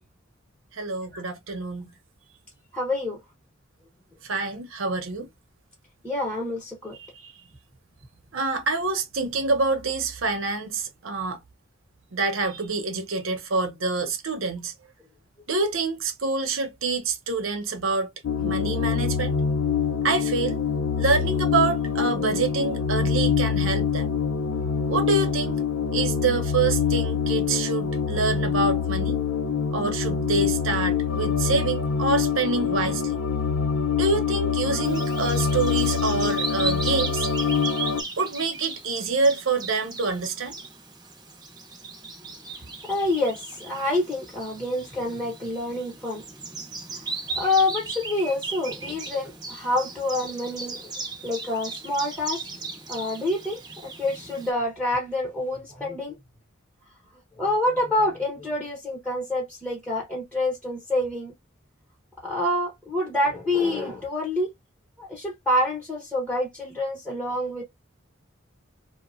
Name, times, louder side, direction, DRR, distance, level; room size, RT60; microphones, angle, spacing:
voice 1, 0.7-1.9 4.2-5.3 6.9-7.3 8.3-11.4 12.1-14.7 15.5-18.1 18.4-19.4 20.0-20.6 21.0-24.2 24.9-25.6 25.9-29.2 29.7-33.2 33.9-37.3 38.2-40.5, right 3 dB, 85° right, 0.8 m, -26 dB
voice 2, 2.7-3.2 6.0-6.9 18.5-18.7 42.9-46.2 47.4-50.9 51.2-52.4 52.9-56.1 57.4-61.3 62.2-64.5 65.0-67.6, left 1 dB, 5° left, 1.0 m, -27 dB
sound 1, 18.2-38.0, left 6 dB, 80° left, 0.5 m, -25 dB
Bird vocalization bird call bird song, 34.8-54.5, right 4 dB, 20° right, 0.8 m, -37 dB
2.9 x 2.1 x 2.5 m
head